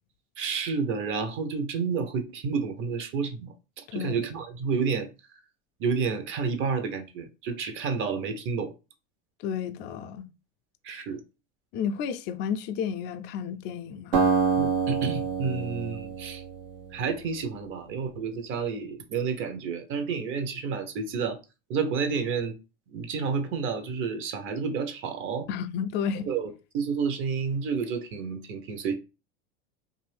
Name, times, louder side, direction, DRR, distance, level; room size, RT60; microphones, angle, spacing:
voice 1, 0.4-5.1 5.8-8.7 10.8-11.2 14.6-16.4 16.9-21.4 21.7-22.5 22.9-25.5 26.3-28.9, right 5 dB, 45° right, 0.8 m, -30 dB
voice 2, 3.9-4.2 9.4-10.3 11.7-14.2 25.5-26.3, left 7 dB, 40° left, 0.4 m, -32 dB
Acoustic guitar, 14.1-17.3, right 5 dB, 85° right, 1.2 m, -27 dB
2.6 x 2.5 x 3.3 m
hypercardioid pair, 110°, 29 cm